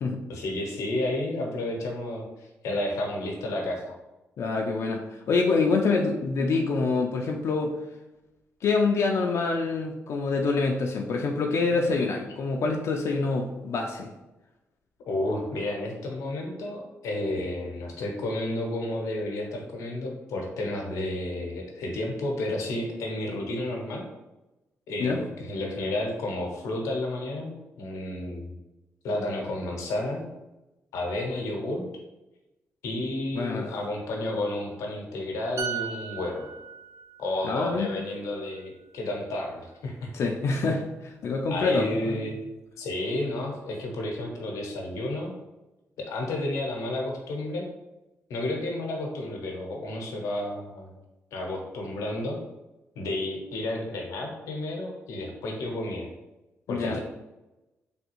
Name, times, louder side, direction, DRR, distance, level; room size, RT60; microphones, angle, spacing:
voice 1, 0.3-4.0 15.0-24.0 24.9-28.6 29.0-30.3 30.9-31.8 32.8-36.5 37.2-40.1 41.5-42.4 42.8-45.3 46.0-47.7 48.3-50.9 51.3-52.4 52.9-56.1 56.7-57.0, left 1 dB, 90° left, 1 dB, 0.7 m, -31 dB
voice 2, 4.4-7.8 8.6-14.1 25.0-25.2 33.3-33.7 37.4-37.9 40.1-42.3 56.7-57.0, left 4 dB, 65° left, 1 dB, 0.4 m, -26 dB
sound 1, 35.6-39.2 39.5-39.7, right 7 dB, 65° right, 0.3 m, -38 dB
3.4 x 2.3 x 3.0 m, 1.0 s
cardioid pair, 80°, 5 cm